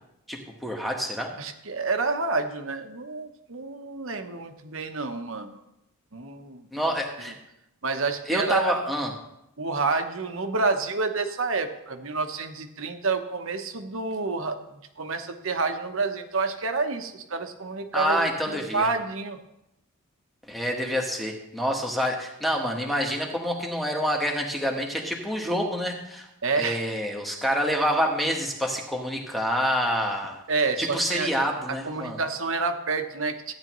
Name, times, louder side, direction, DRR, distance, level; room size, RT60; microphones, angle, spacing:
voice 1, 0.3-1.3 6.7-7.3 8.3-9.1 17.9-18.9 20.5-26.3 26.6-30.4 30.8-32.2, equal, ahead, 0 dB, 1.3 m, -27 dB
voice 2, 1.4-5.6 6.1-6.9 7.3-7.4 7.8-8.7 9.6-14.6 15.0-19.4 26.4-27.0 30.5-31.3 31.7-33.5, right 4 dB, 60° right, 7 dB, 1.0 m, -29 dB
14.5 x 9.6 x 3.1 m, 0.86 s
head